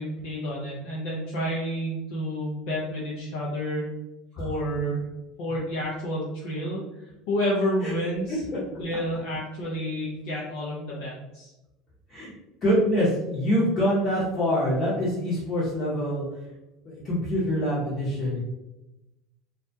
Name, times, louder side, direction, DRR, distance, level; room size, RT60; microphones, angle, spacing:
voice 1, 0.0-3.9 4.4-5.1 5.4-11.5, equal, 70° left, -6 dB, 0.6 m, -30 dB
voice 2, 8.3-8.6 12.1-12.3 12.6-16.2 16.8-18.4, equal, 35° left, -8 dB, 0.9 m, -25 dB
2.3 x 2.1 x 2.7 m, 0.99 s
hypercardioid pair, 85°, 0 cm